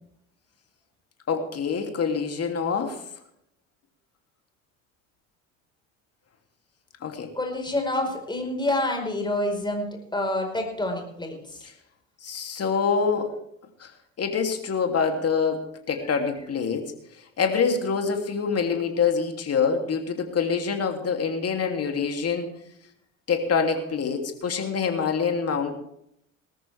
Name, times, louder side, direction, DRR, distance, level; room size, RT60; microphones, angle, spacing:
voice 1, 1.3-3.0 7.0-7.3 12.2-13.3 13.8-13.9 14.2-16.8 17.4-22.5 23.3-25.7, left 5 dB, 35° left, 4 dB, 3.1 m, -25 dB
voice 2, 7.3-11.4, left 1 dB, 10° left, 3 dB, 4.9 m, -27 dB
19.5 x 13.5 x 3.6 m, 0.74 s
hypercardioid pair, 65°, 40 cm